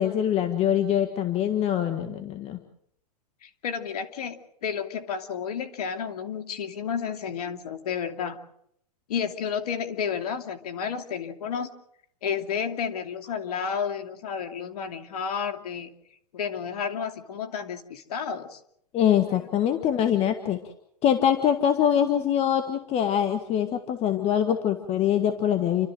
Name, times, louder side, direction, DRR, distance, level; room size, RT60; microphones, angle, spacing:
voice 1, 0.0-2.6 18.9-20.6 21.0-25.9, left 9 dB, 30° left, 7 dB, 1.7 m, -24 dB
voice 2, 3.4-8.4 9.1-11.7 12.2-15.9 16.3-18.6 19.3-19.5, left 7 dB, 70° left, 7 dB, 2.7 m, -31 dB
29.5 x 13.0 x 7.7 m, 0.73 s
hypercardioid pair, 125°, 20 cm